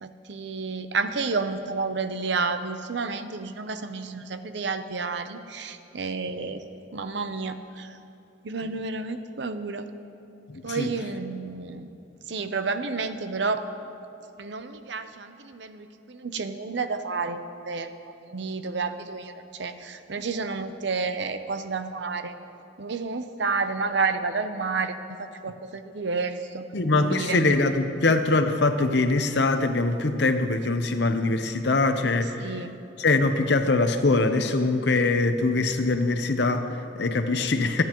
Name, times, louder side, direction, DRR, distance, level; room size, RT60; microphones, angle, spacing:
voice 1, 0.0-6.6 6.9-8.0 8.4-9.9 10.6-11.9 12.3-13.6 14.4-22.3 22.8-26.6 27.0-27.4 32.4-32.8, right 4 dB, 65° right, 10 dB, 0.6 m, -30 dB
voice 2, 10.5-10.9 26.7-32.6 33.0-37.8, left 3 dB, 60° left, 8 dB, 0.7 m, -23 dB
26.5 x 9.4 x 3.0 m, 2.7 s
head